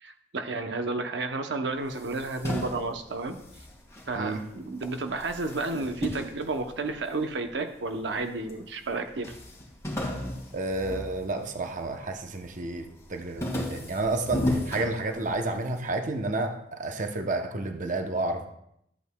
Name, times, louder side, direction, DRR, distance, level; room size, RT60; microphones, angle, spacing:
voice 1, 0.0-3.4 4.1-9.3, right 3 dB, 85° right, 6 dB, 0.8 m, -32 dB
sound 1, 1.8-4.5 4.8-7.3 7.9-8.6 8.9-9.0 9.2-11.8 12.2-12.6 13.0-15.6, left 1 dB, 15° left, 2.0 m, -34 dB
voice 2, 10.5-18.5, right 2 dB, 45° right, 5 dB, 0.8 m, -30 dB
13.0 x 8.3 x 2.3 m, 0.75 s
head